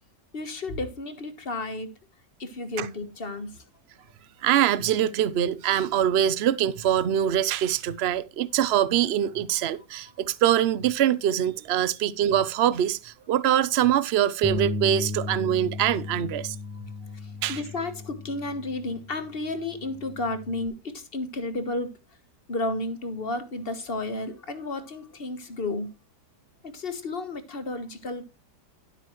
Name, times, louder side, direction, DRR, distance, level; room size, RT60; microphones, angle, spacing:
voice 1, 0.3-1.9 2.4-3.7 9.7-9.8 16.7-21.9 22.5-25.9 26.6-28.2, left 2 dB, 35° left, 1.4 m, -32 dB
voice 2, 4.4-16.6 17.4-17.6, right 10 dB, 55° right, 0.7 m, -24 dB
Bass guitar, 14.4-20.7, left 2 dB, 10° left, 0.5 m, -35 dB
11.5 x 8.3 x 3.1 m
omnidirectional pair, 1.8 m